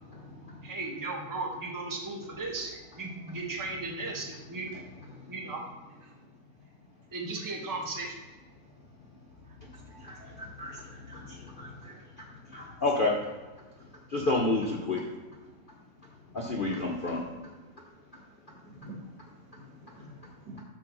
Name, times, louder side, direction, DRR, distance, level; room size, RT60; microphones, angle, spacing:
voice 1, 0.6-4.7 5.3-5.6 7.1-8.2, right 3 dB, 15° right, 0 dB, 0.8 m, -36 dB
voice 2, 9.8-10.4 14.9-15.2 16.6-17.2 18.5-20.6, right 1 dB, 75° right, 0 dB, 2.0 m, -50 dB
voice 3, 12.5-13.1 14.1-15.0 16.3-17.2, left 2 dB, 45° left, -2 dB, 0.7 m, -28 dB
7.7 x 3.5 x 6.0 m, 1.2 s
omnidirectional pair, 1.9 m